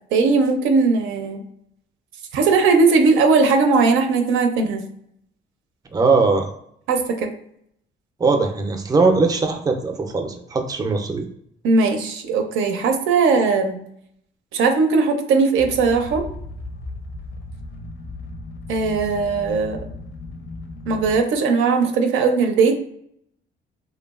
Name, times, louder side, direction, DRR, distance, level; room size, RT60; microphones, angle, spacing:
voice 1, 0.1-1.4 2.3-4.8 6.9-7.3 11.6-13.8 14.5-16.2 18.7-19.8 20.9-22.7, right 4 dB, 90° right, 5 dB, 0.5 m, -18 dB
voice 2, 5.9-6.5 8.2-11.3, right 4 dB, 20° right, 5 dB, 0.4 m, -20 dB
sound 1, 15.6-21.2, left 2 dB, 70° left, 0.5 m, -36 dB
2.9 x 2.2 x 2.3 m, 0.70 s
cardioid pair, 90°, 20 cm